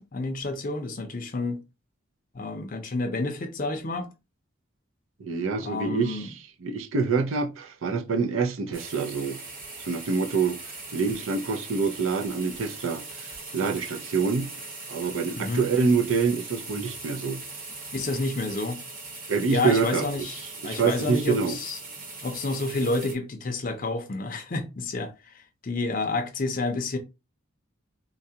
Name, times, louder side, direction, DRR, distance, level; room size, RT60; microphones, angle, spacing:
voice 1, 0.0-1.6 2.3-4.1 5.6-6.3 15.4-15.6 17.9-18.8 19.5-21.8 22.2-27.0, left 2 dB, 40° left, 0.5 m, -29 dB
voice 2, 5.2-6.3 6.6-9.4 9.9-10.6 10.9-14.5 14.9-17.4 19.3-20.3 20.6-21.6, right 5 dB, 80° right, 0.5 m, -26 dB
sound 1, 8.7-23.1, right 3 dB, 40° right, 1.0 m, -40 dB
3.8 x 2.3 x 2.7 m
head